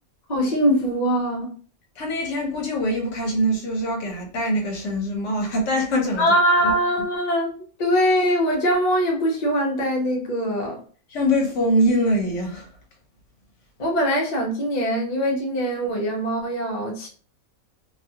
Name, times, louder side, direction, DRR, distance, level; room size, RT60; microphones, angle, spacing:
voice 1, 0.3-1.5 6.2-7.5 7.8-10.8 13.8-17.1, equal, 45° left, 0.5 m, -22 dB
voice 2, 2.0-6.2 6.6-6.7 11.1-12.7, equal, 65° left, 1.0 m, -23 dB
2.6 x 2.3 x 2.7 m
omnidirectional pair, 1.5 m